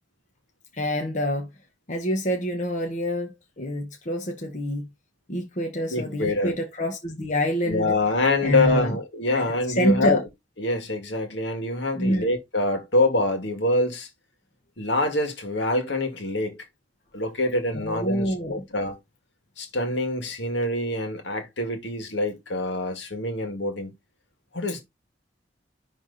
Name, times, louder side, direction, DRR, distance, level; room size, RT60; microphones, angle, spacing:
voice 1, 0.7-1.5 1.9-4.9 5.3-7.9 8.4-9.0 9.3-10.2 11.9-12.3 17.7-18.7, equal, 40° left, 1.3 m, -27 dB
voice 2, 5.9-6.6 7.7-10.2 10.6-14.1 14.8-16.6 17.1-19.0 19.6-23.9 24.5-24.8, left 2 dB, 70° left, 2.1 m, -25 dB
10.5 x 3.6 x 4.1 m
head